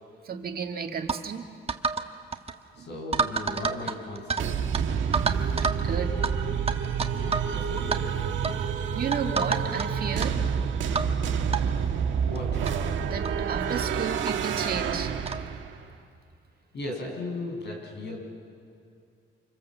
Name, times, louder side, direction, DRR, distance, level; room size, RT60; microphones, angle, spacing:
voice 1, 0.2-1.5 2.8-2.9 5.2-5.3 5.6-6.1 6.5-6.7 7.1-7.3 8.4-8.5 8.9-10.5 10.9-11.1 11.6-11.7 13.1-15.1, right 6 dB, 50° right, 4 dB, 2.0 m, -33 dB
sound 1, 1.1-1.2 1.7-2.1 2.3-2.5 3.1-4.4 4.7-4.8 5.1-5.8 6.2-6.3 6.7-7.5 7.8-8.0 8.4-8.6 9.1-9.9 10.2-10.3 11.0-11.1 11.5-11.6 12.4-12.5 12.7-12.8 13.2-13.4 14.3-14.4 15.3-15.5, right 4 dB, 30° right, 1.3 m, -28 dB
voice 2, 2.8-4.7 7.2-8.3 12.2-12.5 16.7-18.2, left 2 dB, 60° left, 1 dB, 6.7 m, -37 dB
sound 2, 4.4-15.8, right 7 dB, 70° right, 1.7 m, -28 dB
28.0 x 24.5 x 7.5 m, 2.4 s
cardioid pair, 90°, 20 cm